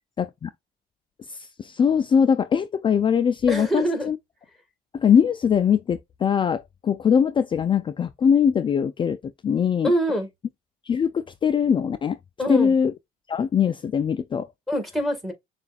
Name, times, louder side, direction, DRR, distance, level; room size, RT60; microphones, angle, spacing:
voice 1, 0.2-0.5 1.3-4.2 4.9-9.2 9.4-9.9 10.9-12.2 12.5-12.9 13.3-14.5, left 7 dB, 30° left, 0.4 m, -21 dB
voice 2, 3.5-4.1 9.8-10.3 12.4-12.7 14.7-15.3, equal, ahead, 1.8 m, -24 dB
6.8 x 2.5 x 2.4 m
cardioid pair, 110°, 17 cm